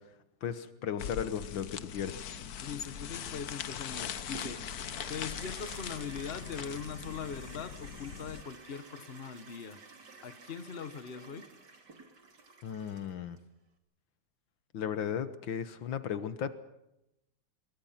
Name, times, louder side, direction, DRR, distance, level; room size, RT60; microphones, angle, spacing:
voice 1, 0.4-2.3 12.6-13.4 14.7-16.5, left 8 dB, 75° left, 12 dB, 1.9 m, -35 dB
sound 1, 1.0-8.4, left 8 dB, 55° left, 1.3 m, -41 dB
voice 2, 2.6-4.6 5.1-9.8 10.2-11.5, left 6 dB, 35° left, 12 dB, 1.4 m, -41 dB
Toilet flush, 4.2-13.4, right 4 dB, 60° right, 3.1 m, -51 dB
26.5 x 23.0 x 5.8 m, 0.87 s
omnidirectional pair, 2.1 m